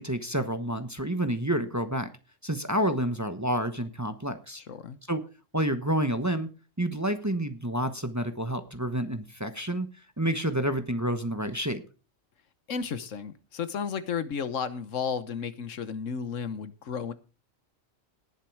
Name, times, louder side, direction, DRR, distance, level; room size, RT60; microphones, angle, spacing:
voice 1, 0.0-2.1 2.4-4.6 5.1-5.2 5.5-6.5 6.8-9.9 10.2-11.8, right 1 dB, 15° right, 1.0 m, -29 dB
voice 2, 4.6-5.0 12.7-17.1, left 6 dB, 75° left, 1.4 m, -33 dB
18.5 x 7.5 x 4.7 m
omnidirectional pair, 1.3 m